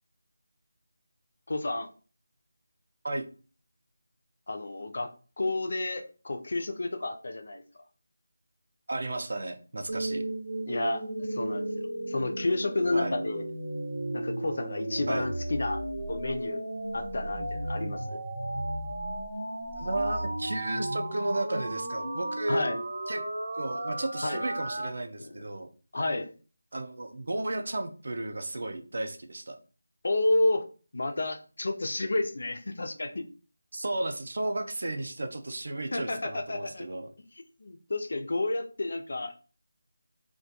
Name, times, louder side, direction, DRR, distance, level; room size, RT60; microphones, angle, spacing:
voice 1, 1.5-1.9 4.5-7.6 10.7-13.5 14.1-15.8 16.1-16.6 16.9-18.2 22.5-22.8 24.2-24.4 25.2-25.4 25.9-26.3 30.0-30.7 30.9-33.3 35.9-36.9 37.6-39.4, left 2 dB, 50° left, 8 dB, 0.3 m, -30 dB
voice 2, 8.9-10.2 12.9-13.1 15.1-15.3 19.8-22.7 23.1-23.2 23.5-25.7 26.7-29.6 33.7-37.1, right 2 dB, 50° right, 6 dB, 0.4 m, -33 dB
sound 1, 9.9-24.9, right 1 dB, 85° right, 0.7 m, -34 dB
2.2 x 2.1 x 2.7 m, 0.37 s
figure-of-eight pair, 180°, 0 cm